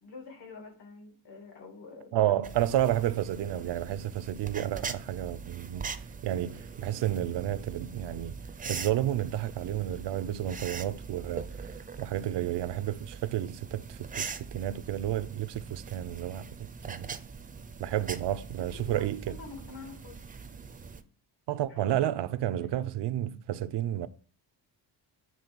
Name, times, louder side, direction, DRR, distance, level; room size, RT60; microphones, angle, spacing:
voice 1, 0.0-2.1 17.9-18.1 18.7-20.2 21.7-21.8 22.6-22.9, left 4 dB, 65° left, 2.5 m, -47 dB
voice 2, 2.1-5.9 6.2-8.4 8.6-11.7 12.0-17.1 17.8-19.4 21.5-24.1, right 12 dB, 70° right, 0.6 m, -31 dB
sound 1, 2.4-21.0, right 5 dB, 20° right, 0.5 m, -42 dB
7.5 x 3.2 x 5.3 m
cardioid pair, 105°, 44 cm